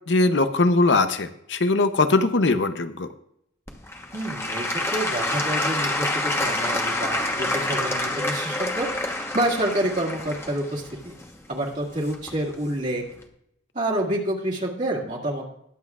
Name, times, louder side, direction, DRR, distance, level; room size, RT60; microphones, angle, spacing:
voice 1, 0.1-3.1, left 3 dB, 75° left, 10 dB, 0.7 m, -21 dB
Applause / Crowd, 3.7-12.5 13.2-13.3, left 2 dB, 15° left, 1.1 m, -27 dB
voice 2, 4.1-11.1 11.5-13.0 13.7-15.5, right 1 dB, 45° right, -4 dB, 2.0 m, -28 dB
21.5 x 7.8 x 2.4 m, 0.73 s
head